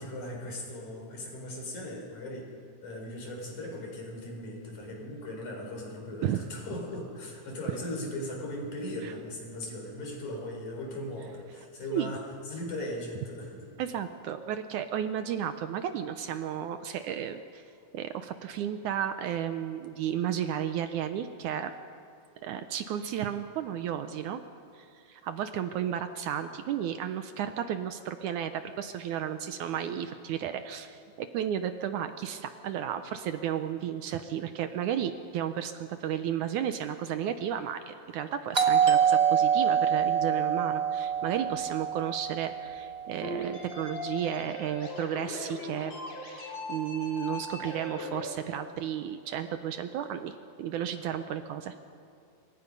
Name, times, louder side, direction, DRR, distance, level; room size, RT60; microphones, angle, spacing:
voice 1, 0.0-2.5 2.8-12.2 12.5-13.6, left 1 dB, 60° left, 0 dB, 5.6 m, -38 dB
voice 2, 13.8-17.6 17.9-21.7 22.4-24.4 24.7-45.9 46.3-51.8, right 9 dB, 75° right, 9 dB, 2.1 m, -33 dB
Doorbell, 38.5-43.1, right 8 dB, 55° right, 0.6 m, -25 dB
sound 1, 43.2-48.3, left 2 dB, 40° left, 4.8 m, -39 dB
26.5 x 24.0 x 5.4 m, 2.4 s
omnidirectional pair, 3.9 m